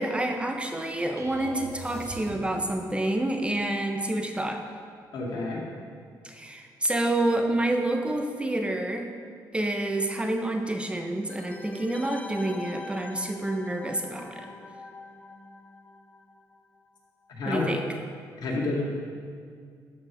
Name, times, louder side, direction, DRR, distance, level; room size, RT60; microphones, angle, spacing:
voice 1, 0.0-4.6 6.2-9.1 9.5-14.5 17.5-17.8, right 1 dB, 15° right, 4 dB, 0.8 m, -28 dB
sound 1, 1.2-2.9, right 3 dB, 45° right, 1.6 m, -41 dB
voice 2, 5.1-5.6 17.3-17.7 18.4-18.8, left 3 dB, 65° left, -2 dB, 2.4 m, -29 dB
sound 2, 11.3-16.8 17.0-17.1, left 3 dB, 20° left, 0.5 m, -43 dB
13.0 x 4.9 x 6.4 m, 2.1 s
cardioid pair, 105°, 8 cm